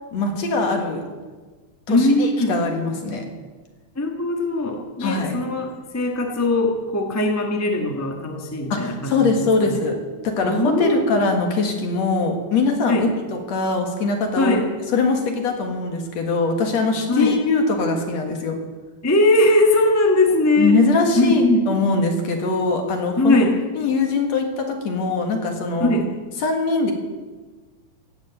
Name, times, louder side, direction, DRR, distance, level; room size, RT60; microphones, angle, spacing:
voice 1, 0.1-1.1 1.9-3.2 5.0-5.4 8.7-10.0 10.2-13.1 13.5-14.6 14.9-18.6 20.6-23.4 23.8-25.9 26.4-26.9, left 3 dB, 60° left, 4 dB, 2.8 m, -22 dB
voice 2, 1.9-2.6 3.9-9.8 10.4-11.1 12.8-13.1 14.4-14.7 17.1-17.3 19.0-20.8 21.2-21.6 23.2-23.5 25.8-26.1, left 1 dB, 15° left, 2 dB, 0.5 m, -20 dB
16.5 x 7.7 x 8.3 m, 1.4 s
omnidirectional pair, 3.5 m